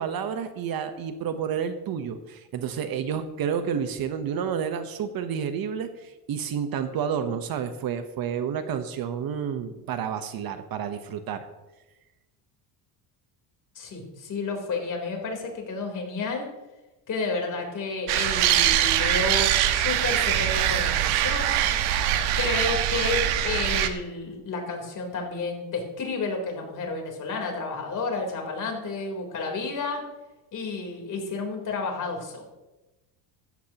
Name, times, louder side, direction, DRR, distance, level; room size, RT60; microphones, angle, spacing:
voice 1, 0.0-11.5, right 7 dB, 45° right, 9 dB, 1.1 m, -30 dB
voice 2, 13.8-16.5 17.1-21.6 22.4-30.0 30.5-32.4, left 3 dB, 40° left, 2 dB, 3.8 m, -31 dB
sound 1, 18.1-23.9, right 11 dB, 85° right, 1.3 m, -23 dB
15.5 x 13.5 x 3.0 m, 1.0 s
cardioid pair, 125°, 48 cm